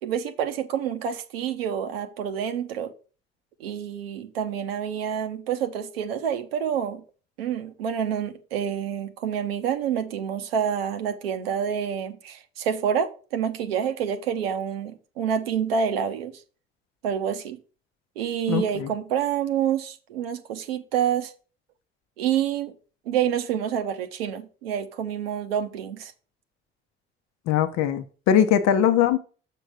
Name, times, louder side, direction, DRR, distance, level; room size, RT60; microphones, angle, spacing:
voice 1, 0.0-2.9 3.6-7.0 7.4-16.3 17.0-17.6 18.2-21.3 22.2-22.7 23.1-26.1, right 8 dB, 85° right, 0.7 m, -28 dB
voice 2, 18.5-18.9 27.5-29.2, left 9 dB, 65° left, 0.7 m, -21 dB
6.8 x 3.7 x 6.2 m
figure-of-eight pair, 40°, 29 cm